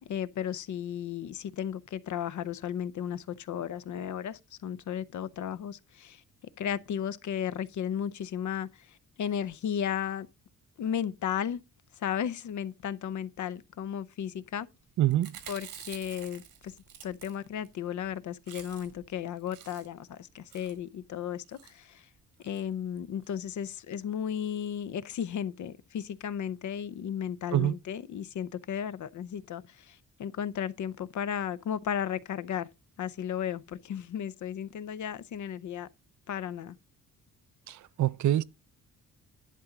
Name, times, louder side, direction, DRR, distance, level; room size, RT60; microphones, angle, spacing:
voice 1, 0.0-6.2 6.6-10.3 10.8-11.6 11.9-14.7 15.5-16.7 17.0-22.1 22.4-32.7 33.0-35.9 36.3-36.8, left 9 dB, 60° left, 0.7 m, -34 dB
voice 2, 15.0-15.3 27.5-27.7 37.7-38.4, right 13 dB, 60° right, 0.5 m, -25 dB
Chewing mastication, 15.1-17.7 18.1-18.2 18.4-19.1 19.4-20.1 20.5-20.8 21.4-21.7 22.4-22.6 23.0-23.1 23.2-23.3, right 9 dB, 90° right, 2.0 m, -48 dB
11.0 x 3.8 x 7.1 m
cardioid pair, 105°, 33 cm